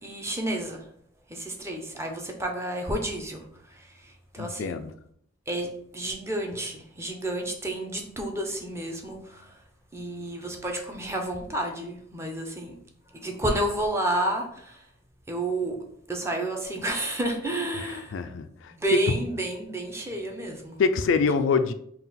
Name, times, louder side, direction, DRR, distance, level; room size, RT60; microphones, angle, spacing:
voice 1, 0.0-0.8 1.3-3.4 3.7-4.7 5.5-9.5 9.9-12.7 13.2-14.8 15.3-15.8 16.1-18.1 18.7-20.8, right 1 dB, 15° right, 2 dB, 0.6 m, -30 dB
voice 2, 4.4-4.9 17.7-18.7 20.8-21.7, left 5 dB, 75° left, 10 dB, 0.3 m, -25 dB
3.7 x 2.4 x 4.1 m, 0.66 s
head